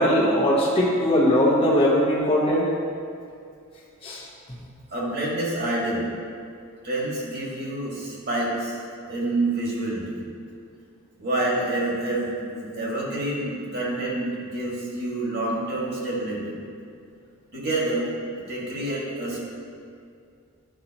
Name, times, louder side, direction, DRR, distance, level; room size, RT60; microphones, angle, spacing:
voice 1, 0.0-2.7 4.0-4.2, equal, 25° left, -6 dB, 1.1 m, -20 dB
voice 2, 4.9-6.1 6.8-8.8 9.1-10.2 11.2-16.6 17.5-18.1 18.5-19.4, right 2 dB, 50° right, -5 dB, 1.9 m, -27 dB
10.5 x 5.6 x 2.9 m, 2.3 s
head